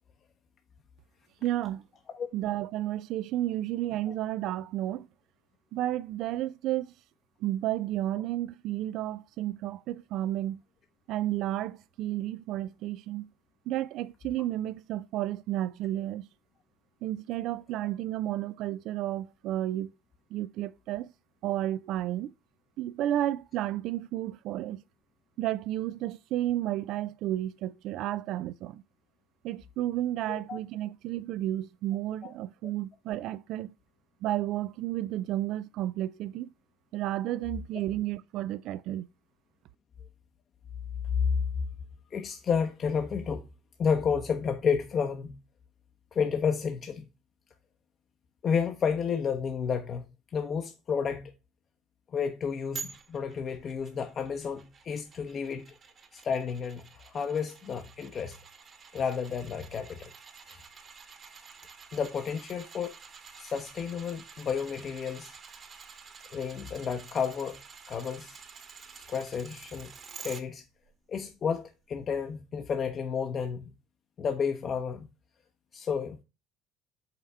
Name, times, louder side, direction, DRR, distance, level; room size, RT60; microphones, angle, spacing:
voice 1, 1.4-1.8 2.3-5.1 5.7-6.9 7.4-10.6 11.1-13.3 13.7-16.3 17.0-19.9 20.3-21.1 21.4-22.3 22.8-24.8 25.4-28.8 29.4-33.7 34.2-36.5 36.9-39.1, right 13 dB, 70° right, 0.3 m, -32 dB
voice 2, 30.3-30.6 32.2-32.3 41.2-41.4 42.1-43.5 43.8-45.4 46.1-47.1 48.4-50.0 50.3-51.3 52.1-55.7 56.1-58.4 58.9-60.1 60.5-60.6 61.9-62.9 63.4-65.4 66.3-67.6 67.9-68.4 68.9-69.9 70.2-70.6 71.1-73.7 74.2-75.1 75.7-76.2, left 6 dB, 45° left, 0.8 m, -31 dB
sound 1, 52.7-70.4 70.8-70.9, right 5 dB, 40° right, 1.2 m, -49 dB
5.6 x 3.5 x 5.5 m
supercardioid pair, 100°, 0 cm